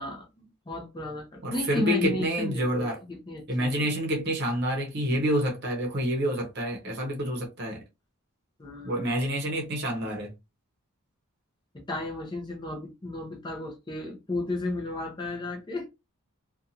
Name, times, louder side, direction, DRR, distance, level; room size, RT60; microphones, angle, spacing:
voice 1, 0.0-3.9 8.6-9.1 11.7-15.9, left 2 dB, 20° left, 0.6 m, -34 dB
voice 2, 1.4-3.0 3.5-7.8 8.8-10.3, equal, 45° right, 0.8 m, -28 dB
2.6 x 2.3 x 2.7 m
head